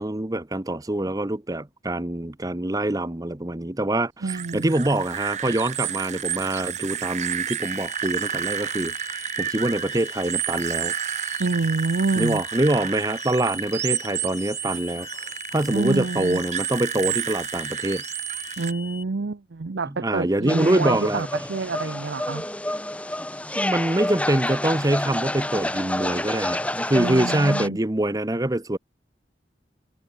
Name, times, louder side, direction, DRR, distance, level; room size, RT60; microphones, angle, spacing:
voice 1, 0.0-10.9 12.2-18.0 20.0-21.2 23.5-28.8, right 1 dB, 20° right, 0.8 m, -25 dB
voice 2, 4.2-4.7 11.4-12.4 15.7-16.4 18.6-22.4 26.9-27.8, right 3 dB, 80° right, 0.7 m, -27 dB
sound 1, 4.3-18.7, right 9 dB, 40° right, 1.1 m, -31 dB
sound 2, 7.6-19.0, left 5 dB, 30° left, 7.8 m, -41 dB
sound 3, 20.5-27.7, left 1 dB, 5° left, 2.0 m, -28 dB
head